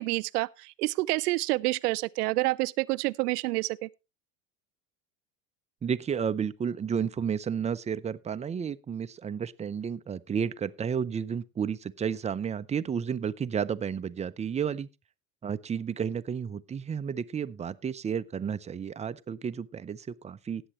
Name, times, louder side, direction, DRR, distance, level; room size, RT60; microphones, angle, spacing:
voice 1, 0.0-3.9, right 21 dB, 80° right, 0.6 m, -28 dB
voice 2, 5.8-14.9 15.4-20.6, right 7 dB, 15° right, 0.5 m, -32 dB
18.0 x 8.0 x 3.0 m
hypercardioid pair, 90°, 46 cm